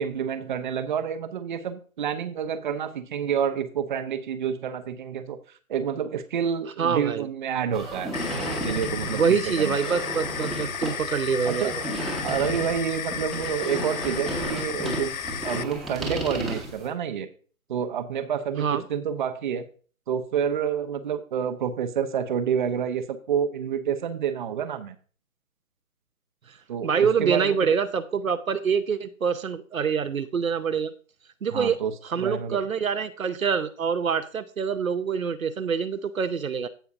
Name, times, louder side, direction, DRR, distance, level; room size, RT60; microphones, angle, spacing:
voice 1, 0.0-5.4 5.7-8.1 8.6-9.8 11.4-11.7 12.2-17.3 17.7-19.7 20.1-25.0 26.7-27.6 31.5-32.6, right 8 dB, 35° right, 8 dB, 0.9 m, -28 dB
voice 2, 6.8-7.3 9.1-11.8 18.6-18.8 26.8-30.9 31.4-31.8 32.0-36.7, right 6 dB, 75° right, 9 dB, 0.9 m, -25 dB
sound 1, 7.7-16.9, right 1 dB, ahead, 1.3 m, -33 dB
sound 2, 8.1-15.6, left 8 dB, 80° left, 0.6 m, -34 dB
16.0 x 5.7 x 2.6 m, 0.40 s
figure-of-eight pair, 135°, 41 cm